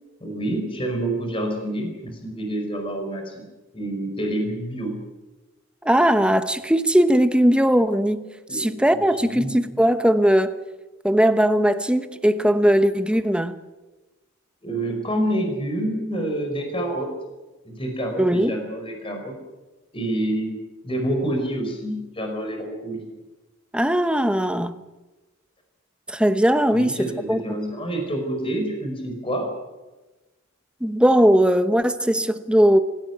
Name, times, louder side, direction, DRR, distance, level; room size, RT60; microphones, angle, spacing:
voice 1, 0.2-3.4 3.7-5.0 8.5-8.6 9.2-9.6 14.6-17.1 17.6-19.4 19.9-20.6 20.8-23.0 26.7-29.5, right 1 dB, 25° left, 4.8 m, -27 dB
voice 2, 5.8-8.3 8.5-10.6 11.0-13.6 18.2-18.5 23.7-24.8 26.1-27.0 27.3-27.4 30.8-32.8, equal, 5° right, 1.0 m, -19 dB
25.5 x 17.0 x 9.4 m
head